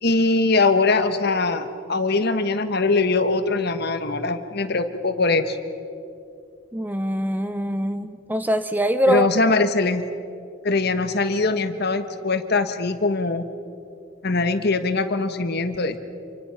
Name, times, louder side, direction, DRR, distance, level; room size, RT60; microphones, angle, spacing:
voice 1, 0.0-5.6 9.1-10.0 10.6-13.5 14.2-16.0, left 3 dB, 50° left, 9 dB, 1.3 m, -22 dB
voice 2, 6.7-9.3, equal, 10° right, 11 dB, 0.5 m, -23 dB
27.5 x 24.5 x 5.8 m, 2.6 s
head